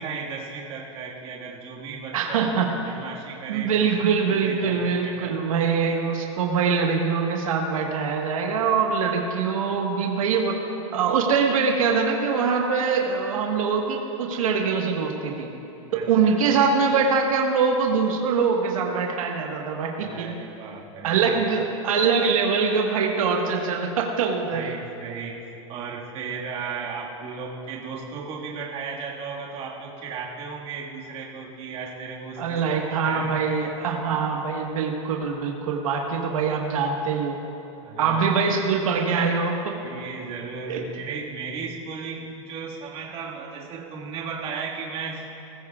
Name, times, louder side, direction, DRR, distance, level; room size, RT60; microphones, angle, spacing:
voice 1, 0.0-2.5 2.9-3.9 4.3-5.3 15.9-16.4 20.0-21.3 24.5-33.4 37.8-38.3 39.8-45.3, right 5 dB, 35° right, -2 dB, 1.9 m, -35 dB
voice 2, 2.1-2.9 3.5-10.6 10.9-15.5 15.9-20.3 21.0-24.7 32.4-37.4 38.0-39.8 40.7-40.8, right 5 dB, 80° right, 1 dB, 1.5 m, -23 dB
20.0 x 15.0 x 2.4 m, 2.9 s
supercardioid pair, 140°, 17 cm